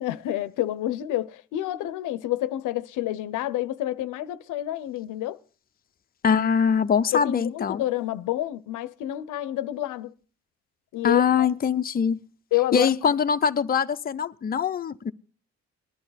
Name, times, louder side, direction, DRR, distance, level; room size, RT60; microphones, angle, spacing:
voice 1, 0.0-5.4 7.1-10.1 10.9-11.5 12.5-12.9, left 14 dB, 85° left, 0.7 m, -28 dB
voice 2, 6.2-7.8 11.0-12.2 12.7-15.1, left 7 dB, 30° left, 0.6 m, -23 dB
19.5 x 11.0 x 4.1 m
cardioid pair, 90°, 30 cm